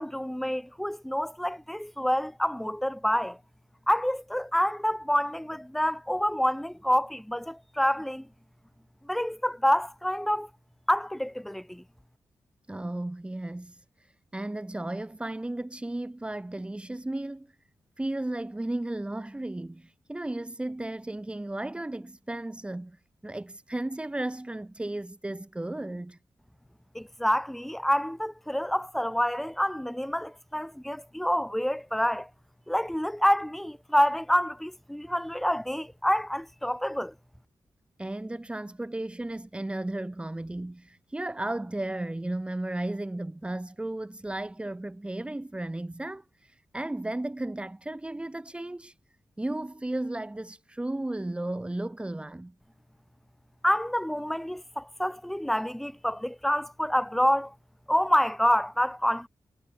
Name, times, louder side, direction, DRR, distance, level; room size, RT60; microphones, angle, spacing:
voice 1, 0.0-3.4 3.9-8.3 9.0-10.5 10.9-11.8 26.9-32.3 32.7-37.1 53.6-57.5 57.9-59.3, equal, ahead, 1.4 m, -27 dB
voice 2, 12.7-13.8 14.3-17.5 18.0-23.0 23.2-26.2 38.0-48.9 49.4-52.5, right 1 dB, 15° right, 2.6 m, -34 dB
wide cardioid pair, 140°, 8 cm